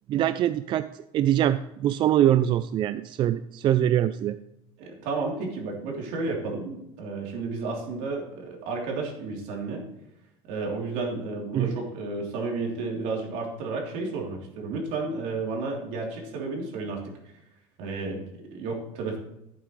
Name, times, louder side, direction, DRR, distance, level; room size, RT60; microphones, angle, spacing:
voice 1, 0.1-0.9 1.1-4.4 11.5-11.7, right 11 dB, 35° right, 13 dB, 0.3 m, -23 dB
voice 2, 4.8-9.8 10.5-17.1 17.8-19.2, right 3 dB, 70° right, 0 dB, 3.2 m, -32 dB
11.5 x 8.5 x 3.1 m, 0.87 s
supercardioid pair, 130°, 13 cm